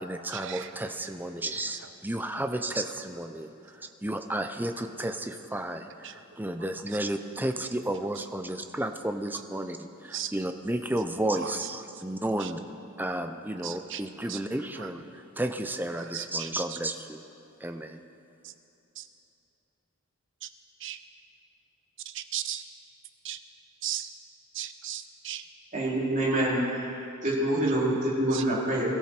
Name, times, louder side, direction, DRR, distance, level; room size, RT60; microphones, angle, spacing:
voice 1, 0.0-12.6 13.0-17.2 17.6-18.0, right 1 dB, 10° right, 7 dB, 0.6 m, -32 dB
voice 2, 13.6-14.0 14.3-14.4 16.1-16.2 19.0-19.1 20.8-21.0 22.1-22.6 23.2-23.4 23.8-24.1 24.6-25.4 28.3-28.4, right 11 dB, 55° right, 10 dB, 0.7 m, -35 dB
voice 3, 25.7-26.6 27.2-29.0, right 1 dB, 35° right, -6 dB, 3.4 m, -26 dB
21.5 x 14.0 x 4.4 m, 2.9 s
head